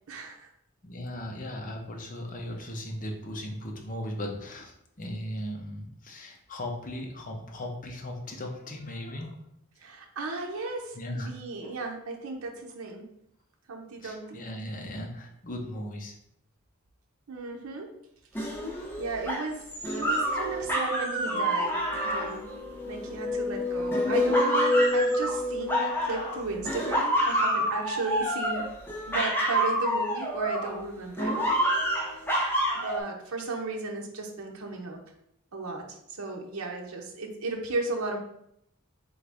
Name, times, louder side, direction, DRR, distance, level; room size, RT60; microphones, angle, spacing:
voice 1, 0.1-0.5 9.8-13.1 13.7-14.4 17.3-18.0 19.0-22.5 22.8-28.7 29.0-31.4 32.7-35.0 35.5-38.2, right 3 dB, 80° right, 2 dB, 0.7 m, -35 dB
voice 2, 0.8-9.4 10.9-11.3 11.6-11.7 14.0-16.1, left 1 dB, 40° left, 2 dB, 0.8 m, -37 dB
sound 1, 18.3-23.3 23.9-26.4 26.6-30.8 31.2-33.0, equal, 10° left, 0.8 m, -28 dB
sound 2, 20.0-21.6 22.5-26.4, left 2 dB, 15° right, 1.0 m, -29 dB
3.9 x 3.8 x 3.5 m, 0.75 s
head